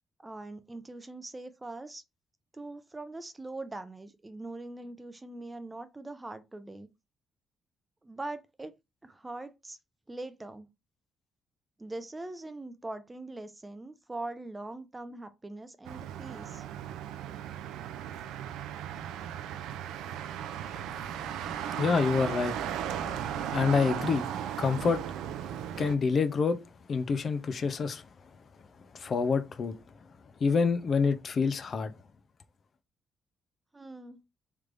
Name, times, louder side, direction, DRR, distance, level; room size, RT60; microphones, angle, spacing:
voice 1, 0.2-2.0 2.5-6.9 8.0-8.7 9.0-9.8 10.1-10.7 11.8-16.6 33.7-34.2, right 2 dB, 20° right, 0.5 m, -42 dB
Motor vehicle (road), 15.8-26.0, right 9 dB, 90° right, 0.4 m, -36 dB
voice 2, 21.8-22.6 23.5-24.2 24.6-25.0 25.8-26.6 26.9-28.0 28.9-29.7 30.4-31.9, left 5 dB, 50° left, 0.5 m, -27 dB
3.3 x 3.2 x 2.5 m
cardioid pair, 90°, 0 cm